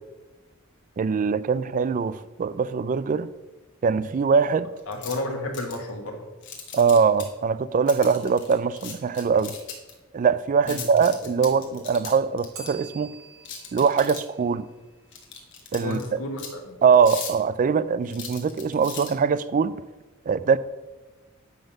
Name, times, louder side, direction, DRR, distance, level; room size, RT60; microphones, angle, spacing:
voice 1, 1.0-3.3 3.8-4.7 6.7-9.6 10.1-13.1 13.7-14.7 15.7-16.2 16.8-19.8 20.3-20.6, right 6 dB, 40° right, 16 dB, 0.3 m, -22 dB
sound 1, 4.8-5.2 5.5-5.9 6.4-7.3 7.9-9.9 10.6-12.7 13.5-14.4 15.1-16.1 16.4-16.5 16.9-17.4 18.1-19.1, left 7 dB, 60° left, 1.5 m, -38 dB
voice 2, 4.9-6.2 10.7-10.8 15.8-16.7, left 2 dB, 85° left, 3 dB, 1.6 m, -32 dB
Bell, 12.5-15.4, right 4 dB, 80° right, 1.9 m, -46 dB
10.5 x 3.9 x 7.1 m, 1.1 s
head